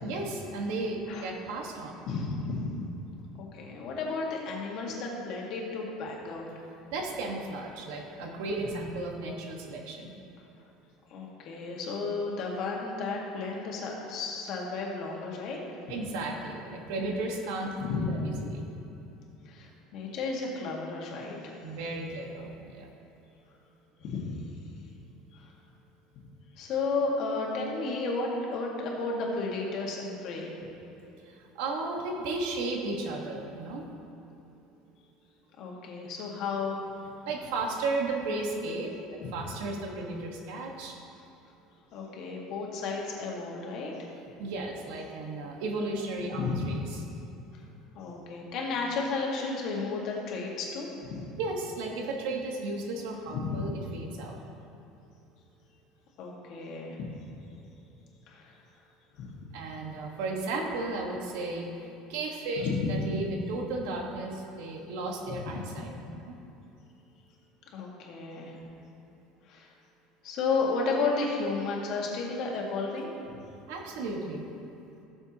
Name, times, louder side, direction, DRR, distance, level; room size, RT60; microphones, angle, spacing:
voice 1, 0.0-1.9 6.9-10.1 15.9-18.6 21.6-22.9 31.2-33.9 37.2-41.0 44.4-46.8 51.4-54.4 59.5-66.4 73.7-74.4, right 2 dB, 75° right, 1 dB, 1.4 m, -34 dB
voice 2, 2.1-2.9 3.4-6.5 11.1-15.6 17.8-18.3 19.4-21.4 24.0-24.4 25.3-25.5 26.6-30.6 35.6-36.8 39.2-39.3 41.9-43.9 46.4-46.8 47.5-47.6 47.9-51.1 53.4-53.6 56.2-57.1 58.3-58.6 59.2-59.4 62.6-63.0 65.4-65.5 67.7-68.6 69.5-69.7 70.2-73.2, left 3 dB, 50° left, -2 dB, 1.7 m, -33 dB
16.5 x 6.9 x 2.9 m, 2.9 s
cardioid pair, 165°, 0 cm